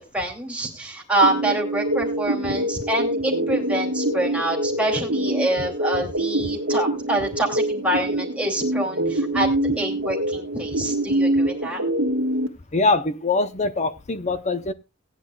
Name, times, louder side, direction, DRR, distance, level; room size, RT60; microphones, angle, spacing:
voice 1, 0.1-9.5 9.8-11.8, right 1 dB, 5° right, 0 dB, 2.6 m, -26 dB
sound 1, 1.2-12.5, right 1 dB, 65° right, 1.4 m, -25 dB
voice 2, 12.7-14.7, left 3 dB, 35° left, 11 dB, 0.7 m, -23 dB
18.0 x 9.9 x 2.3 m, 0.26 s
head